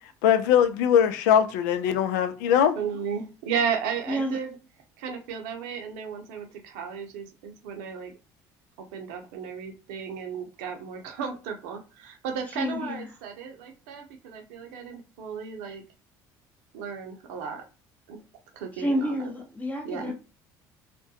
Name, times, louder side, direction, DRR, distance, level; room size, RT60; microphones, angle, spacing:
voice 1, 0.2-2.8, left 9 dB, 85° left, 0.4 m, -21 dB
voice 2, 2.5-4.5 5.0-8.1 8.8-15.8 16.7-17.6 18.1-18.2 18.5-19.2 19.8-20.1, right 7 dB, 85° right, 0.6 m, -34 dB
voice 3, 4.1-4.4 12.5-13.1 18.8-20.1, equal, 15° left, 0.8 m, -29 dB
2.3 x 2.1 x 2.7 m
supercardioid pair, 75°, 9 cm